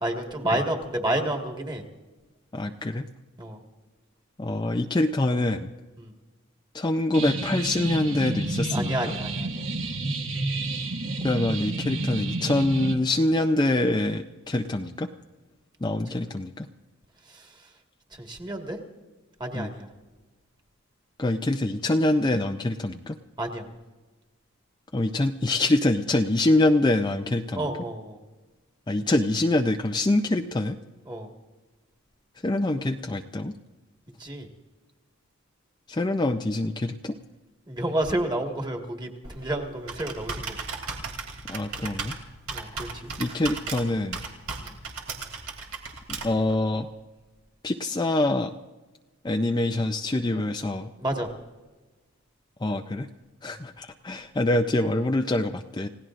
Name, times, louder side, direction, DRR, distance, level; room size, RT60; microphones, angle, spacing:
voice 1, 0.0-1.8 3.4-3.6 6.0-6.1 8.7-9.6 17.3-17.5 18.2-18.8 19.4-19.9 23.4-23.6 27.5-28.2 31.1-31.3 34.2-34.5 37.7-40.5 42.5-43.1 44.6-44.7 51.0-51.3 53.5-53.6, right 1 dB, 20° right, 3 dB, 1.7 m, -30 dB
voice 2, 2.5-3.0 4.4-5.7 6.7-9.0 11.2-15.1 15.8-16.7 19.5-19.7 21.2-23.2 24.9-27.7 28.9-30.8 32.4-33.5 35.9-37.2 41.5-42.1 43.2-44.2 46.1-46.9 47.6-48.5 49.2-50.9 52.6-53.1 53.4-55.9, left 2 dB, 20° left, 5 dB, 0.5 m, -25 dB
sound 1, 7.1-12.9, right 2 dB, 60° right, 1.4 m, -30 dB
Computer keyboard, 39.2-46.5, right 4 dB, 85° right, 2.8 m, -36 dB
30.0 x 17.0 x 2.5 m, 1.2 s
head